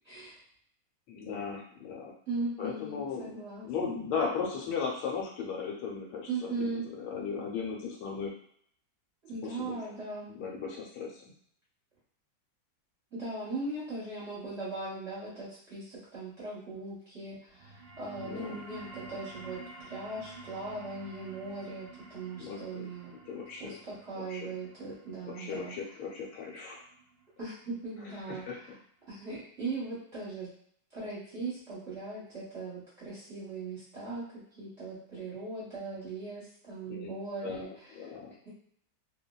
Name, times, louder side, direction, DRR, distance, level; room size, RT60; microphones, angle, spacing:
voice 1, 1.1-2.1 2.6-3.3 3.6-8.3 9.4-9.8 10.3-11.3 18.2-18.6 22.4-22.9 23.3-23.8 24.2-24.5 25.2-26.8 28.3-28.8 36.9-37.1 37.4-38.3, left 5 dB, 85° left, -1 dB, 1.5 m, -37 dB
voice 2, 2.3-4.0 6.3-6.9 9.2-10.3 13.1-23.1 23.6-25.7 27.4-28.4 29.1-30.5 30.9-34.2 34.6-37.9, right 3 dB, 50° right, -10 dB, 0.8 m, -39 dB
sound 1, 17.5-28.6, right 3 dB, 75° right, 1.1 m, -50 dB
3.3 x 2.3 x 2.2 m, 0.64 s
omnidirectional pair, 2.3 m